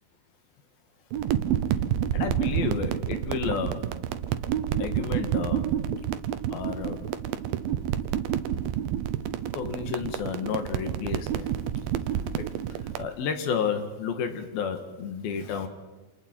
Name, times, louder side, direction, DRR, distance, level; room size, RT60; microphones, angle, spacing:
sound 1, 1.1-13.1, right 10 dB, 75° right, 2.5 m, -29 dB
voice 1, 2.1-3.8 4.8-5.6 6.5-7.0 9.5-11.4 13.0-15.7, left 7 dB, 75° left, 7 dB, 3.3 m, -31 dB
28.5 x 28.0 x 4.5 m, 1.2 s
omnidirectional pair, 4.4 m